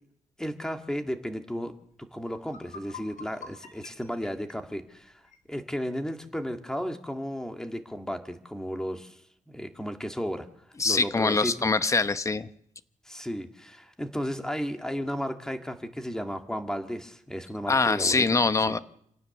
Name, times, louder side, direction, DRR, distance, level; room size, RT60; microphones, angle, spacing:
voice 1, 0.4-1.7 2.0-5.2 5.5-9.2 9.5-10.5 10.8-11.7 13.1-18.3 18.7-18.8, equal, 5° left, 6 dB, 1.8 m, -34 dB
sound 1, 1.9-2.0 2.4-5.5, left 5 dB, 80° left, 4.1 m, -47 dB
voice 2, 10.8-12.5 17.7-18.8, left 3 dB, 25° left, 13 dB, 0.9 m, -24 dB
27.0 x 17.5 x 7.0 m, 0.71 s
wide cardioid pair, 160°, 13 cm